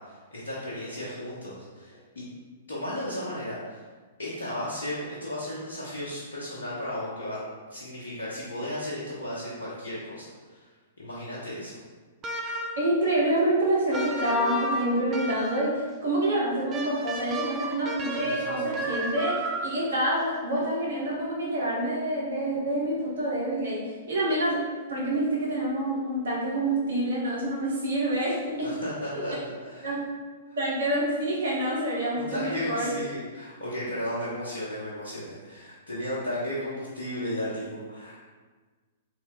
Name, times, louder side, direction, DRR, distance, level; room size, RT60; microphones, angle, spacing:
voice 1, 0.0-2.3 2.7-3.8 4.2-7.4 7.7-10.7 11.0-11.8 18.2-18.9 28.6-30.0 30.5-30.6 32.1-38.2, left 1 dB, 65° left, -8 dB, 0.8 m, -35 dB
sound 1, 12.2-12.9 13.9-15.8 16.7-19.9, right 2 dB, 25° right, 0.4 m, -32 dB
voice 2, 12.8-23.8 24.1-24.6 24.9-28.7 29.0-29.2 29.8-30.0 30.6-32.9, right 1 dB, 65° right, -5 dB, 1.2 m, -27 dB
3.1 x 2.7 x 3.6 m, 1.4 s
figure-of-eight pair, 105°, 0 cm